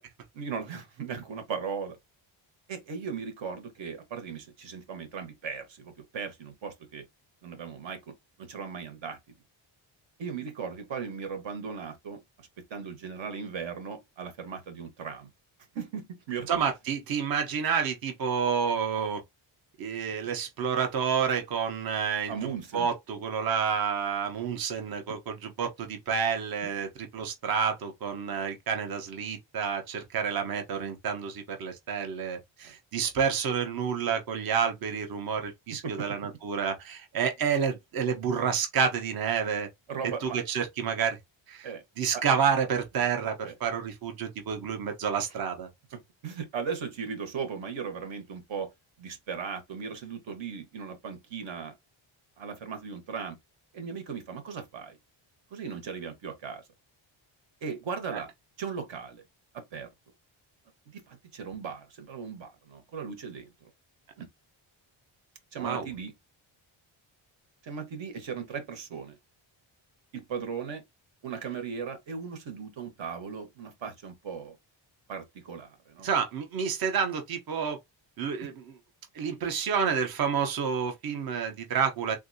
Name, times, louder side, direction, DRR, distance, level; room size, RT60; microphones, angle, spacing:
voice 1, 0.4-2.0 2.7-7.0 7.4-8.1 8.4-9.2 10.2-15.3 15.7-16.5 22.3-22.9 32.6-32.7 35.8-36.1 39.9-40.4 41.6-41.8 42.1-42.2 43.4-43.5 46.2-48.7 49.0-51.7 52.4-53.4 53.7-55.0 55.5-56.6 57.6-58.3 58.6-59.2 59.5-59.9 60.9-63.5 64.2-64.3 65.5-66.1 67.6-69.2 70.1-70.8 71.2-74.6 75.1-76.1 78.4-78.5, right 6 dB, 65° right, 1.2 m, -37 dB
voice 2, 16.5-19.2 19.8-22.3 22.7-39.7 40.0-41.2 41.5-41.7 42.0-45.7 58.1-58.2 65.6-65.9 76.0-77.8 78.2-78.8 79.1-82.2, right 6 dB, 45° right, 0.8 m, -29 dB
3.7 x 2.6 x 2.6 m
wide cardioid pair, 155°, 49 cm